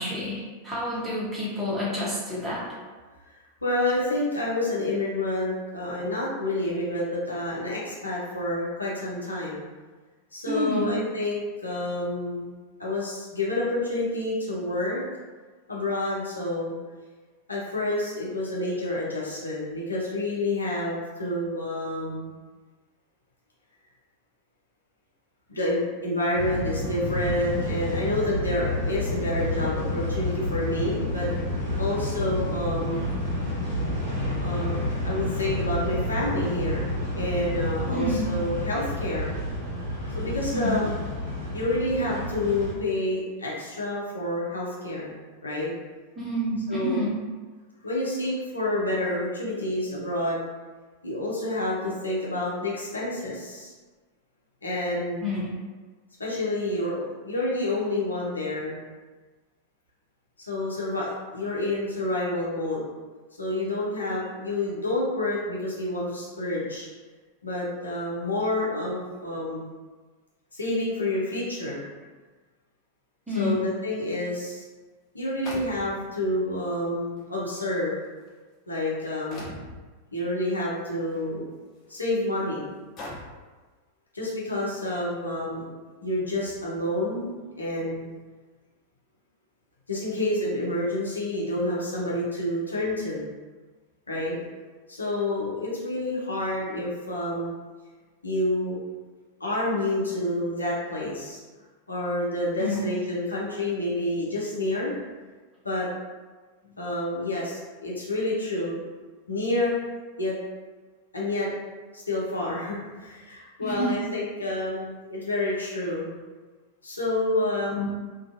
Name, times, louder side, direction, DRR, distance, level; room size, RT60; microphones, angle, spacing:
voice 1, 0.0-2.6 10.5-10.9 37.8-38.3 40.5-40.8 46.2-47.2 55.2-55.5 73.3-73.6 102.6-102.8 113.6-114.0 117.7-117.9, left 1 dB, 10° right, -8 dB, 1.0 m, -28 dB
voice 2, 3.6-9.6 10.3-12.5 12.8-15.0 15.7-16.7 17.5-22.3 25.5-31.3 31.8-33.0 34.4-39.4 40.1-40.9 41.5-45.1 45.4-45.7 46.7-47.0 47.8-50.4 51.0-53.7 54.6-55.2 56.2-58.8 60.5-62.8 63.4-66.9 67.4-69.6 70.5-71.8 73.3-74.6 75.1-77.9 78.7-79.4 80.1-81.5 81.9-82.7 84.1-85.6 86.0-88.1 89.9-93.2 94.1-94.4 94.9-97.5 98.2-98.8 99.4-101.4 101.9-104.9 105.6-105.9 106.8-108.8 109.3-109.9 110.2-110.4 111.1-111.5 111.9-116.1 116.8-117.8, left 1 dB, 80° left, -5 dB, 0.6 m, -28 dB
sound 1, 26.4-42.7, left 1 dB, 65° right, 1.0 m, -29 dB
sound 2, 74.3-74.4 75.4-76.2 77.2-77.3 78.0-78.3 79.3-79.8 81.1-81.2 81.9-82.0 83.0-83.5, left 1 dB, 35° left, 0.6 m, -40 dB
2.4 x 2.3 x 2.5 m, 1.3 s
figure-of-eight pair, 90°, 0 cm